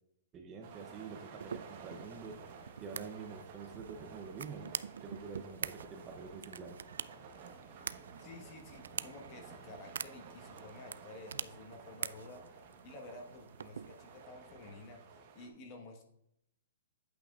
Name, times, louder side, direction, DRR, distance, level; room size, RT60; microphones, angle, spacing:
voice 1, 0.3-2.4 2.8-4.7 5.0-6.8, right 5 dB, 20° right, 4 dB, 0.6 m, -47 dB
sound 1, 0.6-15.5, right 5 dB, 35° right, 1.1 m, -53 dB
sound 2, 1.4-14.3, right 7 dB, 85° right, 0.3 m, -46 dB
voice 2, 8.2-15.0 15.3-16.0, left 2 dB, 30° left, 3 dB, 1.3 m, -51 dB
8.6 x 8.4 x 2.4 m, 0.77 s
hypercardioid pair, 165°, 0 cm